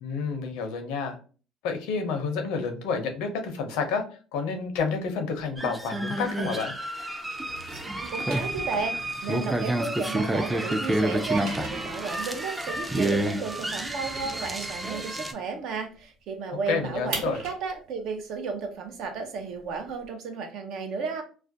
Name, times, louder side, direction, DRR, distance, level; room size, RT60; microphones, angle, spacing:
voice 1, 0.0-1.2 1.6-4.0 4.3-6.7 16.7-17.4, left 5 dB, 80° left, 6 dB, 0.5 m, -29 dB
sound 1, 5.4-6.8 7.1-10.3 10.6-15.6 15.9-16.0 16.3-20.1, right 3 dB, 85° right, 1.3 m, -42 dB
sound 2, 5.6-15.3, right 1 dB, 10° right, 0.4 m, -29 dB
voice 2, 8.0-8.9 9.2-21.2, right 4 dB, 70° right, 5 dB, 0.6 m, -33 dB
2.3 x 2.1 x 2.6 m, 0.38 s
supercardioid pair, 90°, 0 cm